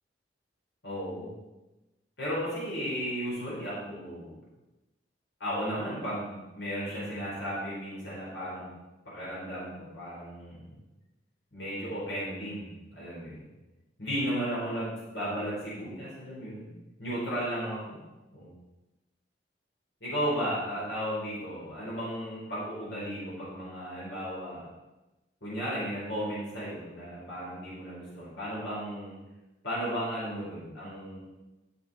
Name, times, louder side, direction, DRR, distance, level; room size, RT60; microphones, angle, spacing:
voice 1, 0.8-1.3 2.2-4.3 5.4-8.7 9.1-10.8 11.5-13.5 14.0-16.7 17.0-18.0 18.3-18.5 20.0-24.7 25.4-29.2 29.6-31.2, equal, 85° left, -8 dB, 4.0 m, -34 dB
12.0 x 6.6 x 4.1 m, 1.0 s
head